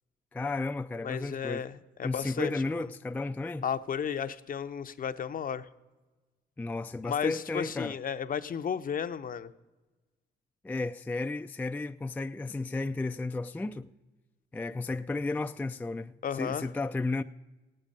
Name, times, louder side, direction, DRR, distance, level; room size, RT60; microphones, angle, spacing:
voice 1, 0.3-1.6 2.0-3.6 6.6-8.0 10.6-13.9 14.5-17.2, left 3 dB, 10° left, 0.3 m, -33 dB
voice 2, 1.0-2.8 3.6-5.7 7.0-9.5 16.2-16.7, left 7 dB, 45° left, 0.6 m, -33 dB
17.5 x 8.8 x 5.3 m
cardioid pair, 90°, 20 cm